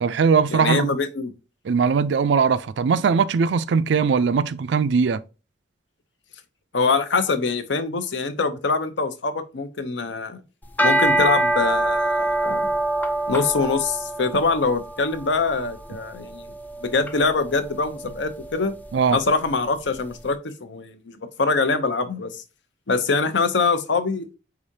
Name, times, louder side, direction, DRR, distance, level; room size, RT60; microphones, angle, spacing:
voice 1, 0.0-0.9 1.7-5.2 18.9-19.2, right 5 dB, 75° right, 0.4 m, -20 dB
voice 2, 0.5-1.3 6.7-10.4 10.8-12.7 13.3-16.5 16.8-18.7 19.1-22.4 22.9-24.4, left 4 dB, 75° left, 0.7 m, -24 dB
sound 1, 10.6-20.0, right 1 dB, 10° left, 0.3 m, -26 dB
4.9 x 3.7 x 2.7 m
head